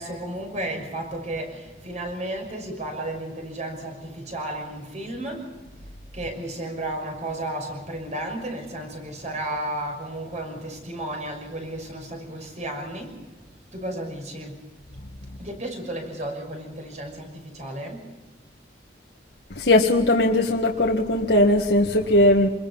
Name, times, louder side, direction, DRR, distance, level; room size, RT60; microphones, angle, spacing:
voice 1, 0.0-5.5 5.8-5.9 6.1-13.2 13.7-14.7 15.4-18.0, right 1 dB, 40° right, 4 dB, 6.1 m, -33 dB
voice 2, 19.6-22.5, left 1 dB, 70° left, 0 dB, 1.8 m, -19 dB
27.0 x 21.5 x 5.5 m, 1.1 s
head